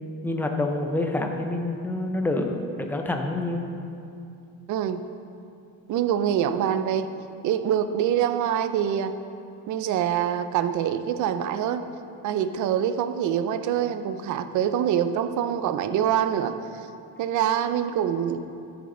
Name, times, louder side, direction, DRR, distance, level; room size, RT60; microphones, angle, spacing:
voice 1, 0.2-3.6, left 2 dB, 5° left, 3 dB, 0.5 m, -27 dB
voice 2, 4.7-5.0 5.9-7.1 7.4-9.1 9.7-11.8 12.2-16.5 17.2-18.4, right 9 dB, 50° right, 10 dB, 0.5 m, -25 dB
12.5 x 6.9 x 3.8 m, 2.6 s
cardioid pair, 155°, 38 cm